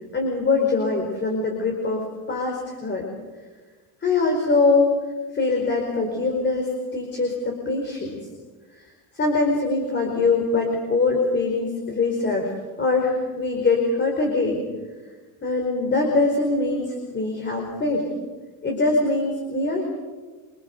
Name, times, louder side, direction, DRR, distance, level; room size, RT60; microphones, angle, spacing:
voice 1, 0.1-3.0 4.0-4.9 5.3-8.1 9.1-12.5 12.8-14.6 15.4-18.1 18.6-19.9, left 3 dB, 25° left, 1 dB, 4.8 m, -23 dB
27.0 x 24.5 x 6.9 m, 1.3 s
cardioid pair, 140°, 40 cm